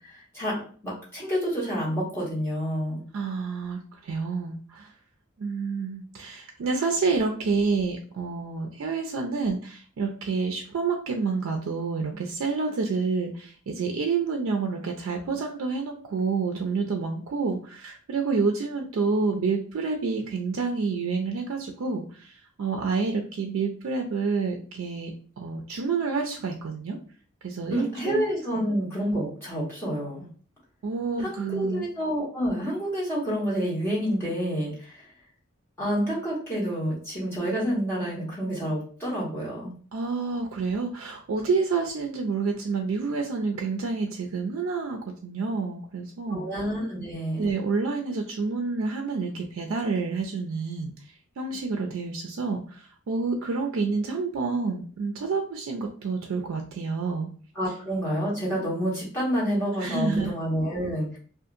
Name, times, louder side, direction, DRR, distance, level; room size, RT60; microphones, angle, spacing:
voice 1, 0.0-3.0 27.7-30.3 31.2-35.0 35.8-39.7 46.3-47.5 57.5-61.2, equal, 10° left, -7 dB, 1.3 m, -28 dB
voice 2, 3.1-4.9 5.4-27.0 27.4-28.2 28.6-28.7 30.8-31.9 39.9-46.5 47.4-50.9 51.4-57.3 59.8-60.3, right 4 dB, 70° right, 2 dB, 0.4 m, -28 dB
2.7 x 2.4 x 2.5 m, 0.43 s
head